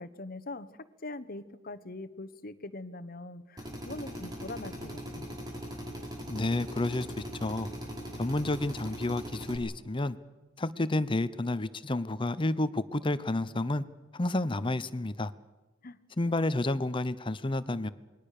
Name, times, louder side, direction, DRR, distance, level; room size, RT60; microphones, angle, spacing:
voice 1, 0.0-5.3 15.8-16.0 16.2-16.3, left 2 dB, 50° left, 13 dB, 1.2 m, -42 dB
Drill, 3.6-9.6, equal, 20° right, 5.3 m, -40 dB
voice 2, 6.3-7.7 8.2-10.2 10.6-13.8 14.1-15.3 16.2-17.9, left 2 dB, 25° left, 14 dB, 0.8 m, -30 dB
28.0 x 21.5 x 6.8 m, 1.1 s
head